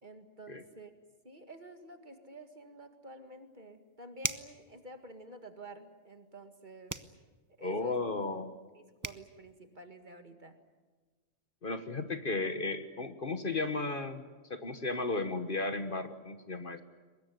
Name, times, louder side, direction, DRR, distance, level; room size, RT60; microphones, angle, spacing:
voice 1, 0.0-0.9 1.2-6.9 7.6-8.0 8.7-10.6, right 1 dB, 40° right, 7 dB, 2.1 m, -50 dB
sound 1, 3.2-3.3 4.2-4.6 6.9-7.2 8.7-8.8 9.0-9.3, right 3 dB, 20° right, 0.7 m, -36 dB
voice 2, 7.6-8.5 11.6-14.2 14.5-16.8, left 3 dB, 45° left, 9 dB, 1.5 m, -34 dB
23.5 x 21.0 x 9.4 m, 1.3 s
omnidirectional pair, 1.3 m